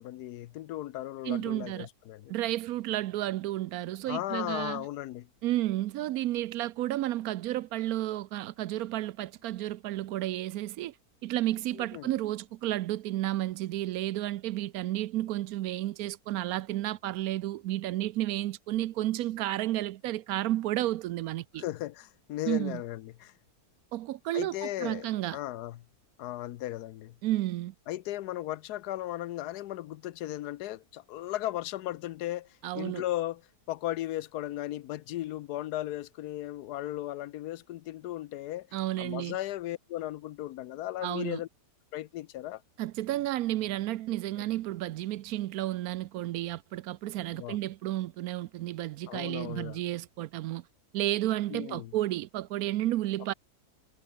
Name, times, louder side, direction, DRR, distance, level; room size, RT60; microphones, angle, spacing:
voice 1, 0.0-2.3 4.1-5.3 11.7-12.1 21.6-23.3 24.3-25.1 25.3-25.8 26.2-27.2 27.9-32.5 32.7-33.4 33.7-38.7 39.0-41.5 41.9-42.6 47.2-47.6 49.1-49.8 51.5-51.9, left 14 dB, 85° left, 1.2 m, -36 dB
voice 2, 1.2-1.9 2.3-4.8 5.4-10.9 11.2-21.6 22.5-22.8 23.9-25.4 27.2-27.7 32.6-33.0 38.7-39.4 41.0-41.4 42.8-50.6 50.9-53.3, right 14 dB, 75° right, 1.0 m, -32 dB
omnidirectional pair, 1.7 m